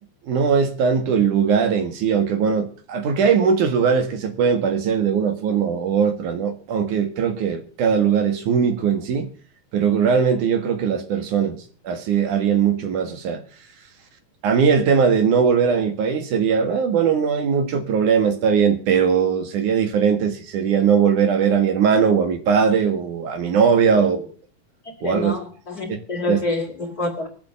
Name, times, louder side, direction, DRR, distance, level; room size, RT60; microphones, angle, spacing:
voice 1, 0.3-9.3 9.7-11.6 11.8-13.4 14.4-24.3 25.0-25.4 25.9-26.0 26.3-26.4, right 6 dB, 70° right, 3.2 m, -20 dB
voice 2, 25.0-27.3, left 2 dB, 30° left, 2.9 m, -27 dB
21.0 x 7.6 x 6.9 m
omnidirectional pair, 3.7 m